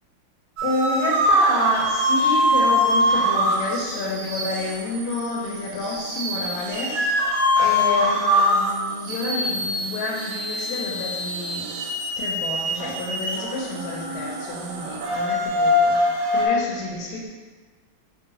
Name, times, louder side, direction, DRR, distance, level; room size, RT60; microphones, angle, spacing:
voice 1, 0.6-11.7 12.2-17.3, left 2 dB, 85° left, -3 dB, 1.5 m, -29 dB
sound 1, 0.6-16.5, equal, 75° right, 1.0 m, -23 dB
4.7 x 2.6 x 2.6 m, 1.4 s
omnidirectional pair, 2.4 m